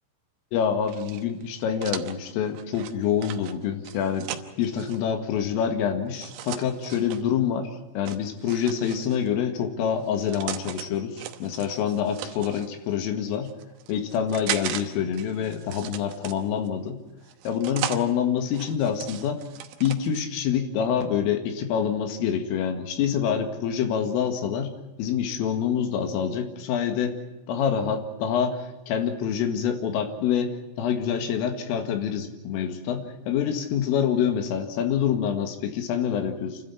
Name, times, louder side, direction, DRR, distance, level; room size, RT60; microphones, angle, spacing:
voice 1, 0.5-13.5 13.9-17.0 17.5-19.4 19.8-24.7 25.0-27.2 27.5-36.6, left 8 dB, 85° left, 6 dB, 4.5 m, -26 dB
sound 1, 0.9-5.0 6.1-7.2 8.1-9.3 10.0-10.9 11.2-12.7 13.3-14.8 15.1-16.7 17.2-18.0 18.5-20.2, right 12 dB, 85° right, 3.7 m, -37 dB
28.5 x 12.5 x 9.6 m, 1.0 s
omnidirectional pair, 5.8 m